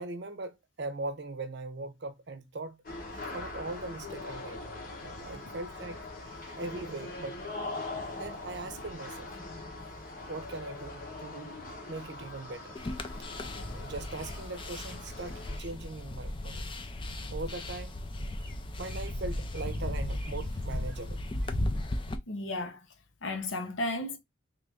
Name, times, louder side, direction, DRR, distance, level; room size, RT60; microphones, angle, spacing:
voice 1, 0.0-2.8 3.1-4.6 5.0-7.4 8.2-9.3 10.3-11.5 11.9-12.8 13.2-13.3 13.7-16.7 17.3-18.0 18.8-21.5, right 3 dB, 60° right, 0.6 m, -40 dB
sound 1, 2.8-15.6, left 2 dB, 45° left, 0.9 m, -42 dB
sound 2, 12.7-22.2, left 1 dB, 25° left, 0.4 m, -36 dB
sound 3, 14.9-15.7 17.7-18.1 18.4-21.0, right 2 dB, 10° right, 0.8 m, -55 dB
voice 2, 22.3-22.9 23.2-24.2, left 2 dB, 75° left, 0.8 m, -34 dB
3.2 x 2.5 x 3.3 m
head